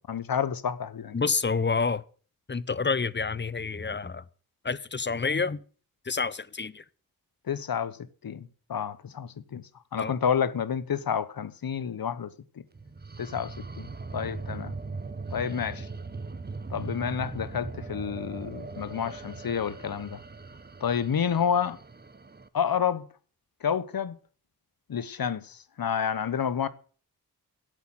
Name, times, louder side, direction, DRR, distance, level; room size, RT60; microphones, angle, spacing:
voice 1, 0.0-1.1 7.5-8.0 8.2-9.6 9.9-12.3 13.2-13.9 14.1-14.7 15.3-15.9 16.7-20.2 20.8-21.8 22.5-23.0 23.6-24.2 24.9-26.7, left 7 dB, 65° left, 1.1 m, -29 dB
voice 2, 1.1-2.0 2.5-4.2 4.6-5.6 6.1-6.8 10.0-10.1, left 4 dB, 30° left, 0.8 m, -28 dB
sound 1, 12.7-22.5, right 3 dB, 25° right, 1.0 m, -40 dB
11.0 x 8.3 x 7.4 m
cardioid pair, 55°, 37 cm